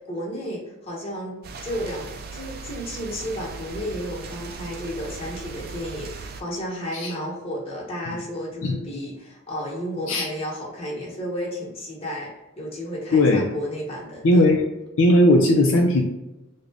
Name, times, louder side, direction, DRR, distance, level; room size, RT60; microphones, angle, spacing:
voice 1, 0.0-1.4 1.6-12.3 12.6-14.4, equal, 30° left, -4 dB, 1.1 m, -32 dB
sound 1, 1.4-6.4, right 4 dB, 50° right, 0.3 m, -38 dB
voice 2, 13.1-13.5 14.2-14.7 15.0-16.0, left 1 dB, 70° left, 1 dB, 0.4 m, -17 dB
3.7 x 2.2 x 3.4 m, 0.98 s
head